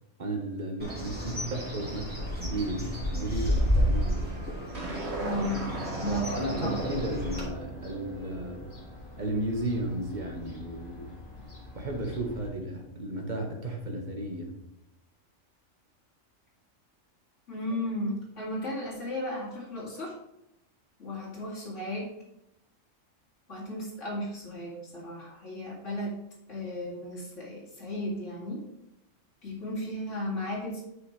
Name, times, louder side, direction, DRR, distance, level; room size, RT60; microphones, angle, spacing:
voice 1, 0.2-4.4 6.0-8.7 9.2-11.1 11.7-14.5, right 1 dB, 35° right, 2 dB, 1.5 m, -34 dB
Bird, 0.8-7.4, equal, 5° right, 2.3 m, -31 dB
sound 1, 4.7-9.1, right 2 dB, 55° right, 1.8 m, -37 dB
voice 2, 5.2-5.7 6.0-6.7 17.5-20.1 21.0-22.1 23.5-26.2 26.5-28.6 29.4-30.8, left 1 dB, 65° left, -4 dB, 2.6 m, -35 dB
Fowl / Gull seagull, 6.6-12.5, left 3 dB, 85° left, 2.6 m, -47 dB
9.7 x 5.8 x 3.2 m, 0.84 s
omnidirectional pair, 1.3 m